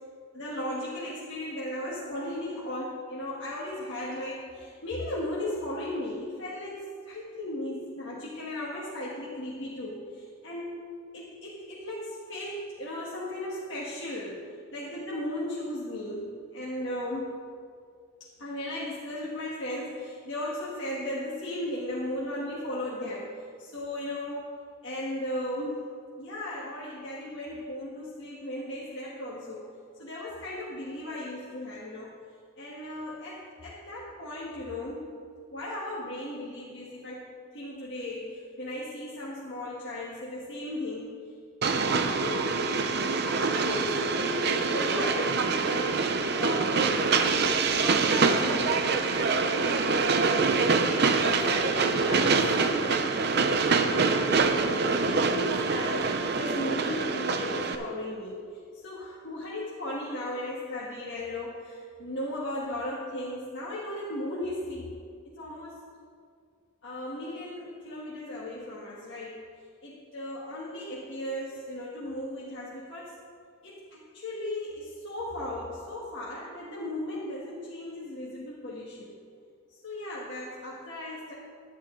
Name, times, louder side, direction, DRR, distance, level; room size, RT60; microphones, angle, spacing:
voice 1, 0.3-10.9 11.1-14.4 14.7-17.3 18.4-23.3 23.6-24.5 24.8-25.8 26.2-32.1 32.6-35.1 35.5-41.1 42.2-42.6 43.2-50.2 50.5-58.5 58.8-64.9 65.3-65.8 66.8-69.4 69.8-73.1 73.6-79.1 79.8-81.3, left 1 dB, 60° left, -7 dB, 1.6 m, -36 dB
Train, 41.6-57.8, right 4 dB, 50° right, 0.6 m, -25 dB
11.0 x 11.0 x 3.8 m, 2.1 s
head